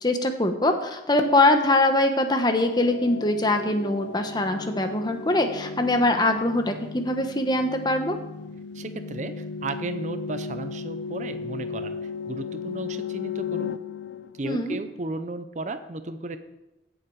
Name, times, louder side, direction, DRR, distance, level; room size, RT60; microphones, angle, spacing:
voice 1, 0.0-8.2 14.4-14.8, left 2 dB, 25° left, 6 dB, 1.0 m, -23 dB
sound 1, 2.3-15.0, left 5 dB, 80° left, 0.5 m, -36 dB
voice 2, 8.7-12.0 12.3-13.8 14.4-16.4, right 2 dB, 40° right, 10 dB, 0.7 m, -34 dB
16.5 x 7.5 x 4.8 m, 0.97 s
head